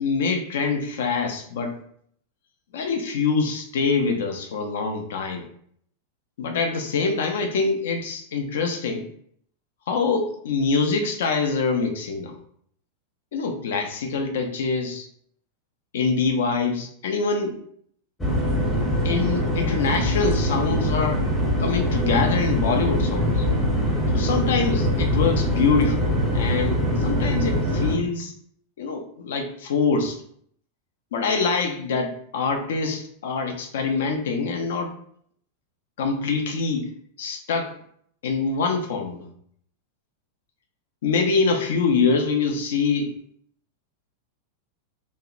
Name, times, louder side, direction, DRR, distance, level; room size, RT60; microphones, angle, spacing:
voice 1, 0.0-1.8 2.7-5.4 6.4-9.1 9.9-12.3 13.3-15.1 15.9-17.6 19.0-21.2 21.6-23.4 24.1-28.3 28.8-30.2 31.1-34.9 36.0-36.9 37.2-37.7 38.2-39.3 41.0-43.1, left 4 dB, 60° left, 5 dB, 0.4 m, -25 dB
sound 1, 18.2-28.0, equal, 15° left, 0.7 m, -23 dB
2.6 x 2.1 x 2.5 m, 0.64 s
figure-of-eight pair, 90°, 0 cm